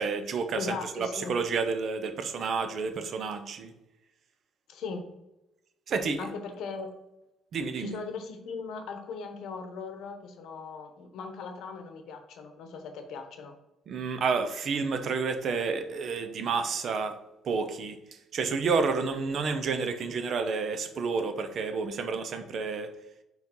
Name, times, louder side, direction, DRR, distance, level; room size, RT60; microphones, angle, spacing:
voice 1, 0.0-3.7 5.9-6.3 7.5-7.9 13.9-17.2 17.4-18.0 18.3-22.9, right 4 dB, 40° right, 8 dB, 0.6 m, -30 dB
voice 2, 0.5-1.4 4.7-5.1 6.2-6.9 7.8-13.5, left 5 dB, 60° left, 6 dB, 0.9 m, -39 dB
4.9 x 3.9 x 5.3 m, 0.92 s
cardioid pair, 175°, 0 cm